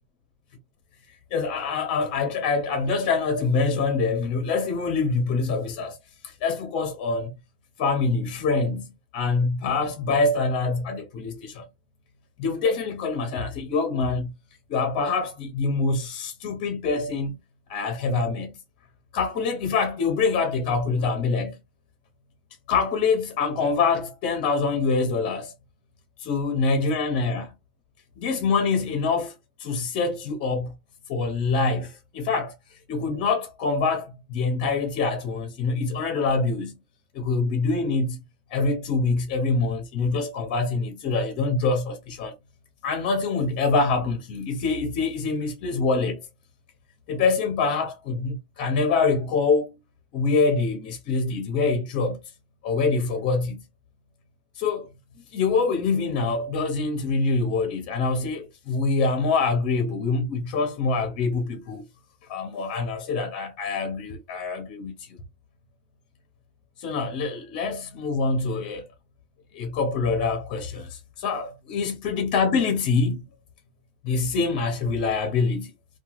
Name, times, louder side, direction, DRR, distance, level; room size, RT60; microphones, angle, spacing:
voice 1, 1.3-6.0 6.2-7.3 7.8-8.9 9.1-11.6 12.4-14.3 14.7-17.4 17.7-18.6 19.1-21.6 22.7-25.5 26.2-27.5 28.2-29.3 29.6-30.7 31.1-32.5 32.9-36.8 37.1-38.2 38.5-42.3 42.8-46.2 47.1-49.8 50.1-52.2 52.6-53.6 54.6-54.9 55.3-61.8 62.3-65.2 66.8-68.8 69.5-73.2 74.0-75.7, left 4 dB, 35° left, 0.6 m, -25 dB
2.8 x 2.2 x 2.9 m
supercardioid pair, 175°, 5 cm